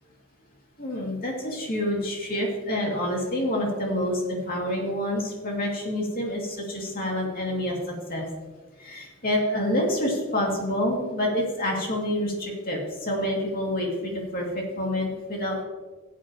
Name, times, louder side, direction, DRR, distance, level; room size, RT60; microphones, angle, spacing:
voice 1, 0.8-8.3 8.8-15.6, left 1 dB, 40° left, -1 dB, 2.5 m, -27 dB
16.5 x 8.5 x 3.0 m, 1.3 s
head